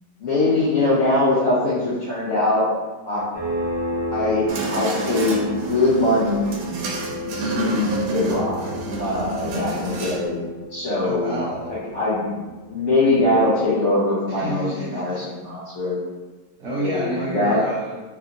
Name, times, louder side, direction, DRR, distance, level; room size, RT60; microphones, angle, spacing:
voice 1, 0.2-2.7 3.1-3.2 4.1-6.4 7.3-8.6 9.0-10.4 10.7-11.4 11.9-12.4 12.7-16.0 16.8-17.6, left 2 dB, 75° left, -9 dB, 0.6 m, -22 dB
sound 1, 3.3-13.7, equal, 45° left, 0.8 m, -33 dB
sound 2, 4.5-10.3, right 1 dB, 90° right, 1.4 m, -29 dB
voice 2, 11.0-12.0 14.3-15.2 16.6-18.0, right 1 dB, 70° right, -7 dB, 0.7 m, -29 dB
3.4 x 2.8 x 2.5 m, 1.2 s
omnidirectional pair, 2.1 m